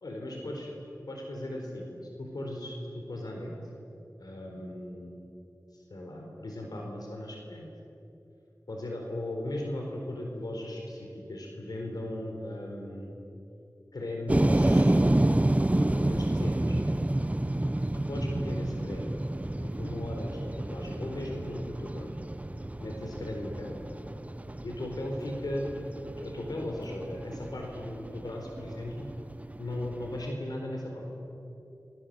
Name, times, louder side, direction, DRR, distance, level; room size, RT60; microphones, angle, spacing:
voice 1, 0.0-0.6 1.1-3.5 4.2-5.1 5.7-7.7 8.7-13.2 13.9-15.0 15.7-16.8 17.9-19.2 19.6-22.1 22.8-23.8 24.6-25.7 26.2-29.1 29.6-31.1, left 1 dB, 85° left, 0 dB, 4.3 m, -37 dB
sound 1, 14.3-30.3, right 1 dB, 20° right, 0.9 m, -29 dB
28.5 x 22.5 x 7.8 m, 2.9 s
wide cardioid pair, 55°, 7 cm